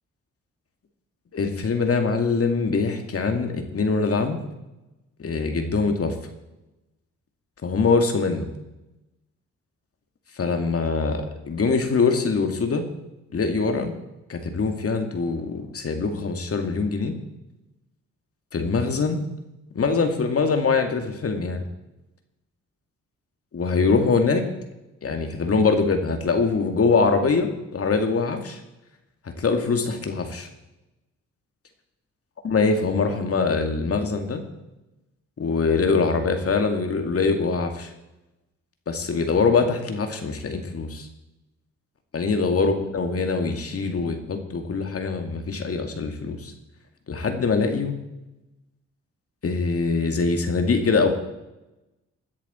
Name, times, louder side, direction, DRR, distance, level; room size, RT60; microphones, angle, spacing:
voice 1, 1.3-4.4 5.2-6.2 7.6-8.5 10.4-12.9 13.3-13.9 14.3-17.2 18.5-19.2 19.7-21.6 23.5-24.5 25.0-28.6 29.4-30.5 32.4-34.4 35.4-37.9 38.9-41.1 42.1-46.5 47.1-48.0 49.4-51.2, left 4 dB, 50° left, 5 dB, 2.3 m, -23 dB
16.5 x 10.5 x 4.4 m, 0.96 s
cardioid pair, 65°, 29 cm